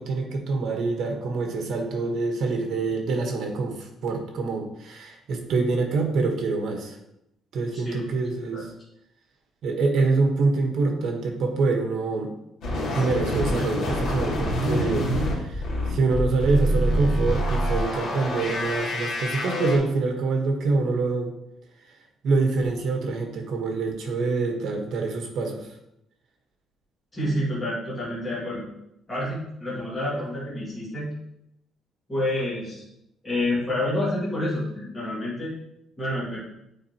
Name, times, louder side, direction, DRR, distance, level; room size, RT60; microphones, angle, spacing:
voice 1, 0.0-7.0 7.5-8.7 9.6-12.3 12.8-21.3 22.2-25.7, right 3 dB, 55° right, 3 dB, 1.2 m, -25 dB
voice 2, 7.7-8.0 8.5-8.7 27.1-28.6 29.1-31.1 32.1-32.8 33.2-35.5 36.0-36.4, left 1 dB, 15° left, -9 dB, 2.2 m, -28 dB
sound 1, 12.6-19.8, equal, 65° left, 1.9 m, -26 dB
8.6 x 4.3 x 2.9 m, 0.81 s
cardioid pair, 160°, 0 cm